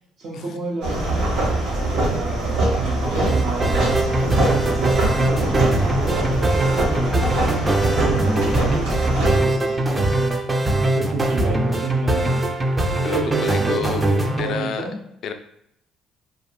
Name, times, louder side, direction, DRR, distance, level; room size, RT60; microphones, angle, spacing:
voice 1, 0.2-1.1 1.9-8.9 9.2-10.4 10.9-12.4 13.0-15.0, right 2 dB, 65° right, -6 dB, 0.7 m, -30 dB
sound 1, 0.8-9.4, right 2 dB, 85° right, 0.9 m, -23 dB
sound 2, 3.3-14.5, right 1 dB, 20° right, 0.4 m, -22 dB
voice 2, 13.0-14.0 14.4-14.8 15.2-15.3, left 7 dB, 65° left, 7 dB, 0.3 m, -29 dB
2.4 x 2.1 x 2.9 m, 0.75 s
cardioid pair, 85°, 0 cm